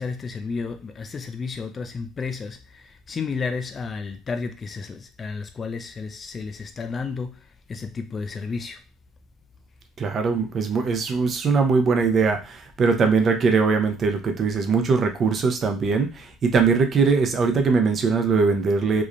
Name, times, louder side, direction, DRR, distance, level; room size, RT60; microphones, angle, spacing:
voice 1, 0.0-7.4 7.7-8.8, left 4 dB, 30° left, 0.3 m, -32 dB
voice 2, 10.0-19.0, right 4 dB, 40° right, 0.5 m, -21 dB
3.0 x 2.0 x 2.5 m
cardioid pair, 110°, 0 cm